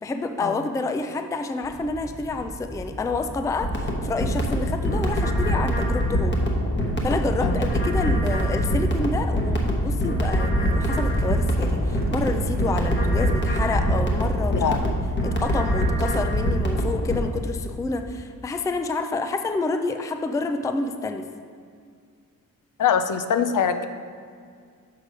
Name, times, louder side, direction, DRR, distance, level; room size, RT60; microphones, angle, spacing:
voice 1, 0.0-6.4 7.0-14.9 15.2-21.3, left 3 dB, 10° left, 7 dB, 0.3 m, -28 dB
sound 1, 1.6-14.5, equal, 25° right, 1.0 m, -31 dB
sound 2, 3.6-17.2, equal, 30° left, 1.1 m, -24 dB
voice 2, 22.8-23.8, left 7 dB, 60° left, 9 dB, 0.5 m, -23 dB
6.6 x 5.2 x 5.0 m, 2.1 s
cardioid pair, 85°, 35 cm